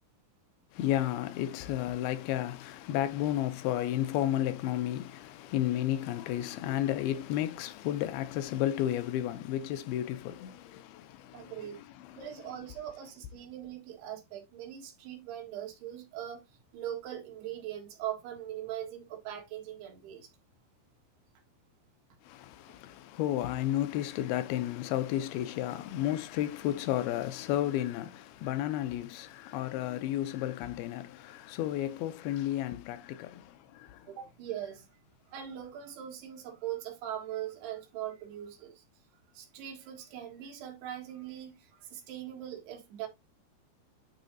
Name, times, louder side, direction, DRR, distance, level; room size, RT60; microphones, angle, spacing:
voice 1, 0.7-11.6 12.0-12.3 22.2-34.1, left 12 dB, 80° left, 2.4 m, -32 dB
voice 2, 11.3-11.8 12.2-16.4 16.7-20.3 34.1-34.9 35.3-38.8 39.4-43.1, right 11 dB, 85° right, 3.6 m, -41 dB
11.5 x 3.9 x 2.7 m
omnidirectional pair, 4.5 m